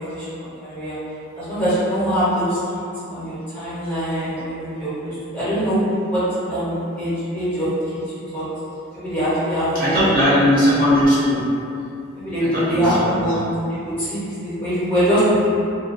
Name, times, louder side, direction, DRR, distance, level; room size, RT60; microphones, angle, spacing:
voice 1, 0.1-1.0 1.4-2.8 3.1-5.8 6.1-8.0 8.3-8.4 8.9-10.0 12.2-13.5 13.8-15.5, equal, 10° left, -14 dB, 0.8 m, -23 dB
voice 2, 9.7-11.4 12.4-13.2, equal, 40° right, -11 dB, 0.6 m, -18 dB
2.3 x 2.1 x 2.5 m, 2.6 s
head